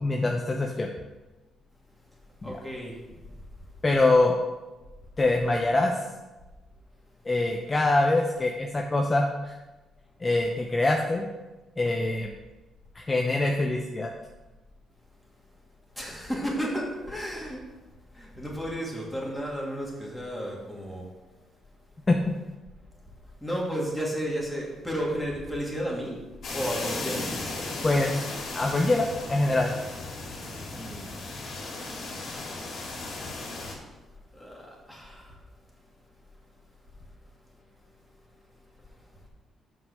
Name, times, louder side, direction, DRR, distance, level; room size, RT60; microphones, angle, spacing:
voice 1, 0.0-0.9 2.4-2.5 3.8-4.3 5.2-6.0 7.3-9.5 10.2-11.2 11.8-12.3 12.9-14.1 22.1-22.3 27.8-28.2 28.5-29.7, left 2 dB, 25° left, 2 dB, 0.7 m, -24 dB
voice 2, 2.4-3.0 16.0-17.6 18.1-21.1 23.4-27.3 30.7-31.2 34.3-35.4, equal, ahead, -4 dB, 2.5 m, -33 dB
sound 1, 26.4-33.7, left 2 dB, 60° left, 2.1 m, -36 dB
5.8 x 5.5 x 6.4 m, 1.1 s
cardioid pair, 90°, 0 cm